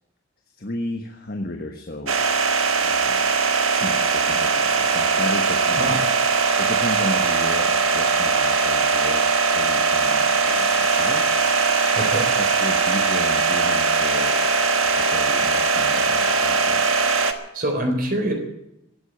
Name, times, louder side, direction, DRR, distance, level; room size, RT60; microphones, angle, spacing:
voice 1, 0.5-2.2 2.8-3.3 3.7-11.2 12.3-14.5 15.0-16.8, left 1 dB, 50° left, 4 dB, 1.3 m, -33 dB
sound 1, 2.1-17.3, right 4 dB, 90° right, 1.4 m, -20 dB
Sink (filling or washing), 10.0-14.9, left 5 dB, 65° left, 3.9 m, -38 dB
voice 2, 12.0-12.3 17.5-18.3, right 1 dB, 45° right, 4 dB, 3.8 m, -24 dB
16.5 x 8.2 x 10.0 m, 0.87 s
head